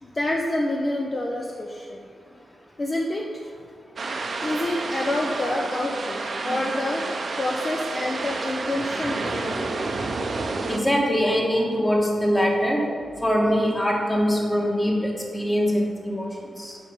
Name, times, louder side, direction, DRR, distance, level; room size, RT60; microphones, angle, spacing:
voice 1, 0.0-2.1 2.8-3.4 4.4-6.2 6.4-7.0 7.4-9.7, left 1 dB, 30° left, 0 dB, 0.7 m, -27 dB
sound 1, 4.0-10.8, right 3 dB, 50° right, 0.7 m, -30 dB
voice 2, 9.0-9.3 10.7-12.8 13.2-16.8, equal, 10° left, -1 dB, 1.5 m, -23 dB
7.0 x 5.1 x 7.1 m, 2.2 s
wide cardioid pair, 125°, 0 cm